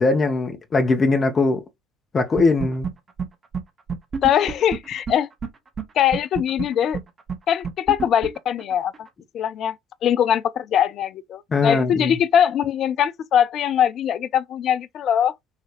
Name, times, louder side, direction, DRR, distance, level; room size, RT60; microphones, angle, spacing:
voice 1, 0.0-1.6 2.1-2.9 11.5-12.2, left 3 dB, 30° left, 1.2 m, -20 dB
sound 1, 2.4-2.9 3.2-3.3 3.5-3.6 3.9-5.5 5.8-5.9 6.1-9.1, right 6 dB, 30° right, 1.2 m, -28 dB
voice 2, 4.2-5.3 6.0-7.0 7.5-8.9 9.3-9.8 10.0-15.3, left 9 dB, 50° left, 0.4 m, -21 dB
5.7 x 2.8 x 3.1 m
figure-of-eight pair, 60°, 0 cm